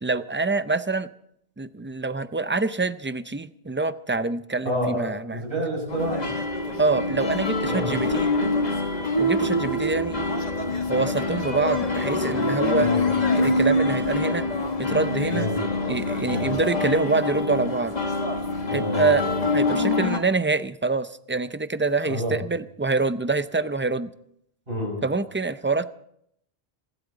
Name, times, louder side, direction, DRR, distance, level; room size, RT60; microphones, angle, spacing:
voice 1, 0.0-1.1 1.6-5.4 6.8-8.3 9.2-10.2 10.9-12.9 13.4-14.5 14.8-15.5 15.9-17.9 18.7-19.2 19.5-24.1 25.0-25.9, right 3 dB, 20° right, 13 dB, 0.3 m, -25 dB
voice 2, 4.6-6.3 7.7-7.9 12.8-13.0 15.3-15.6 16.2-16.6 18.7-19.3 22.1-22.3 24.7-25.0, equal, 60° right, 0 dB, 6.8 m, -29 dB
sound 1, 5.9-20.2, left 2 dB, 40° left, 1.7 m, -25 dB
26.5 x 12.5 x 4.0 m, 0.70 s
omnidirectional pair, 1.1 m